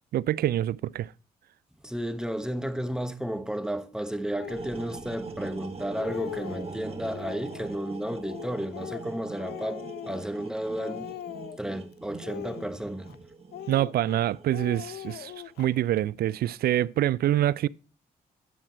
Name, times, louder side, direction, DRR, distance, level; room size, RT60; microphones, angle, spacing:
voice 1, 0.1-1.1 13.7-15.3 15.6-17.7, right 13 dB, 65° right, 0.4 m, -25 dB
voice 2, 1.8-11.1 11.6-13.2, right 1 dB, 5° right, 1.1 m, -33 dB
Bowed string instrument, 4.2-7.8, right 4 dB, 20° right, 0.8 m, -47 dB
Speech, 4.4-4.7 5.4-5.5 5.8-6.7 7.1-7.7 8.2-10.5 10.8-11.7 12.2-13.2 13.5-14.2 14.5-15.7, left 13 dB, 80° left, 0.5 m, -41 dB
sound 1, 4.5-15.4, right 3 dB, 35° right, 1.7 m, -43 dB
10.0 x 7.2 x 4.5 m
supercardioid pair, 55°, 17 cm